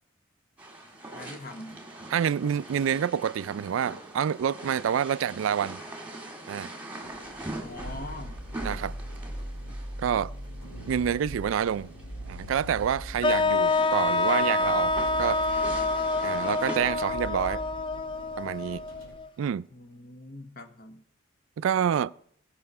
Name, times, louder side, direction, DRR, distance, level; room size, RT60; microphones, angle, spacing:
sound 1, 0.6-16.8, right 2 dB, 10° right, 1.8 m, -43 dB
voice 1, 1.1-1.8 7.6-8.3 19.7-21.0, left 2 dB, 50° left, 1.1 m, -42 dB
voice 2, 2.1-5.8 6.5-6.7 8.6-9.0 10.0-10.3 10.9-11.9 12.3-15.4 16.2-17.6 18.4-18.8 19.4-19.7 21.6-22.1, right 8 dB, 80° right, 0.3 m, -27 dB
sound 2, 7.0-19.1, equal, 80° left, 2.9 m, -41 dB
sound 3, 13.2-19.3, left 3 dB, 25° left, 0.4 m, -27 dB
17.0 x 5.7 x 5.5 m
head